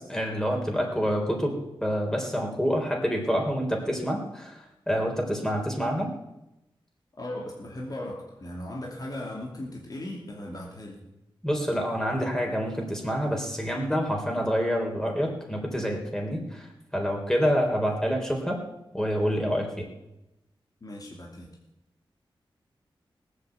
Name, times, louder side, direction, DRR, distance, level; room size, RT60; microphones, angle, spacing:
voice 1, 0.1-1.5 1.8-4.6 4.9-6.1 11.4-16.7 16.9-18.6 18.9-19.9, equal, 5° left, 1 dB, 3.8 m, -27 dB
voice 2, 7.2-11.0 20.8-21.5, left 1 dB, 45° left, -1 dB, 2.7 m, -37 dB
18.5 x 8.3 x 8.2 m, 0.92 s
wide cardioid pair, 85°, 9 cm